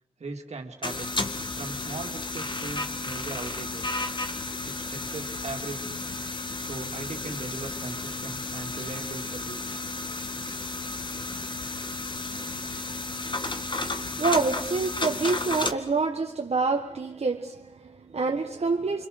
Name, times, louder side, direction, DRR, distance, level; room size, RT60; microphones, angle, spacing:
voice 1, 0.2-1.2 1.6-4.0 4.6-6.0 6.6-9.8, right 3 dB, 90° right, 2.4 m, -39 dB
sound 1, 0.8-15.7, left 2 dB, 45° left, 1.9 m, -33 dB
voice 2, 14.2-19.1, right 4 dB, 70° right, 1.5 m, -27 dB
27.5 x 25.5 x 6.6 m
cardioid pair, 50°, 11 cm